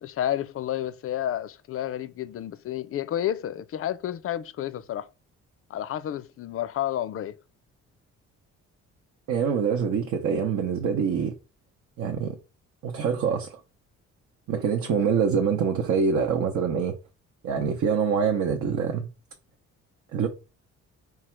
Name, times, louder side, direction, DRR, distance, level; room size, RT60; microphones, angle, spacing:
voice 1, 0.0-5.1 5.7-7.4 14.9-15.1, left 11 dB, 50° left, 0.4 m, -31 dB
voice 2, 9.3-11.3 12.0-12.4 12.8-13.6 14.5-17.0 17.4-19.1 20.1-20.3, right 6 dB, 70° right, 0.8 m, -25 dB
4.8 x 2.4 x 4.3 m
cardioid pair, 90°, 30 cm